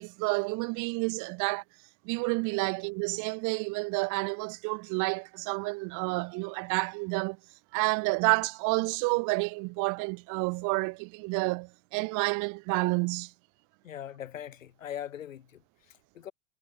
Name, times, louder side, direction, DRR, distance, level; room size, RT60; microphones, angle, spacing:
voice 1, 0.0-1.6 2.0-7.4 7.7-13.3, right 29 dB, 50° right, 2.2 m, -29 dB
voice 2, 13.8-16.3, left 10 dB, 75° left, 5.6 m, -41 dB
hypercardioid pair, 90°, 39 cm